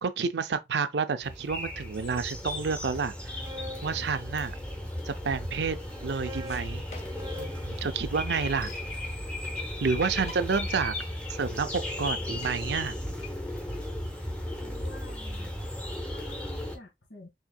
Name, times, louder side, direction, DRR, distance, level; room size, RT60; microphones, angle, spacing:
voice 1, 0.0-3.3 3.8-4.6 5.0-5.8 6.0-6.8 7.4-8.7 9.8-10.9 11.3-12.9, right 5 dB, 80° right, 0.5 m, -29 dB
sound 1, 1.2-16.8, left 1 dB, 5° left, 0.9 m, -35 dB
sound 2, 3.2-4.9 5.7-9.9, left 1 dB, 20° right, 0.5 m, -47 dB
sound 3, 6.4-7.4 7.7-7.8 8.0-8.9 9.7-9.8 10.1-10.8 11.2-11.3 11.6-11.7 12.1-12.6 13.2-16.1, left 4 dB, 40° left, 0.9 m, -48 dB
voice 2, 14.5-15.7 16.0-17.3, left 1 dB, 75° left, 1.7 m, -49 dB
4.4 x 3.5 x 2.2 m
head